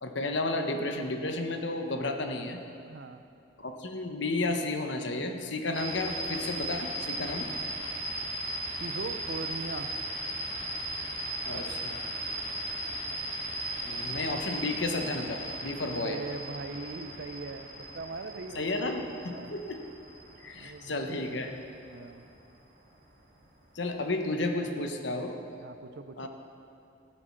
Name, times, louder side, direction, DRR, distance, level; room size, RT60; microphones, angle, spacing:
voice 1, 0.0-2.6 3.6-7.5 11.4-12.1 13.8-16.2 18.5-19.8 20.4-21.6 23.7-25.4 26.2-26.3, left 2 dB, 70° left, 5 dB, 1.0 m, -32 dB
voice 2, 2.9-3.2 8.8-9.9 15.9-18.7 19.3-19.5 20.5-21.0 21.8-22.2 25.6-26.3, right 3 dB, 65° right, 10 dB, 0.6 m, -40 dB
sound 1, 5.7-22.4, right 1 dB, 45° right, 3.1 m, -37 dB
13.5 x 7.7 x 5.9 m, 2.6 s
head